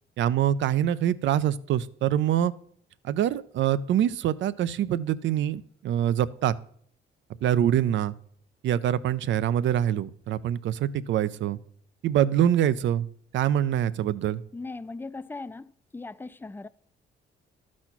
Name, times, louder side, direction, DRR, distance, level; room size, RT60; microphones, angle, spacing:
voice 1, 0.2-2.5 3.0-6.5 7.4-8.1 8.6-11.6 12.0-13.1 13.3-14.4, right 10 dB, 70° right, 0.5 m, -25 dB
voice 2, 14.5-16.7, left 3 dB, 10° left, 0.4 m, -39 dB
12.0 x 4.3 x 5.9 m
cardioid pair, 90°, 20 cm